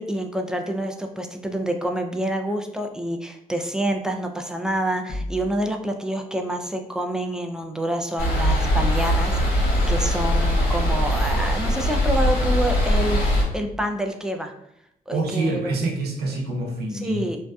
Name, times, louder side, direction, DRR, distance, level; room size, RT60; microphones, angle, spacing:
voice 1, 0.0-13.2 13.5-14.5 15.1-15.6 16.9-17.4, right 1 dB, 5° right, 3 dB, 0.3 m, -27 dB
sound 1, 5.1-6.1, left 1 dB, 40° left, 0.6 m, -34 dB
sound 2, 8.2-13.4, equal, 70° left, 1.0 m, -21 dB
voice 2, 15.1-17.4, right 2 dB, 90° right, -1 dB, 0.6 m, -26 dB
2.6 x 2.1 x 2.3 m, 0.77 s
cardioid pair, 70°, 16 cm